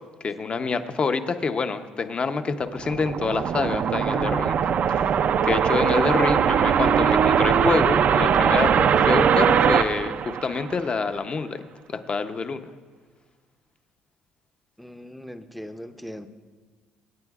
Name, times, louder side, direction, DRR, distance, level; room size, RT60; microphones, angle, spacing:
voice 1, 0.2-4.6 5.4-11.6 11.9-12.6, left 4 dB, 35° left, 9 dB, 0.7 m, -26 dB
sound 1, 2.6-11.0, right 7 dB, 50° right, 0.4 m, -21 dB
voice 2, 14.8-16.3, equal, ahead, 9 dB, 0.6 m, -39 dB
24.5 x 8.8 x 2.4 m, 1.5 s
cardioid pair, 95°, 3 cm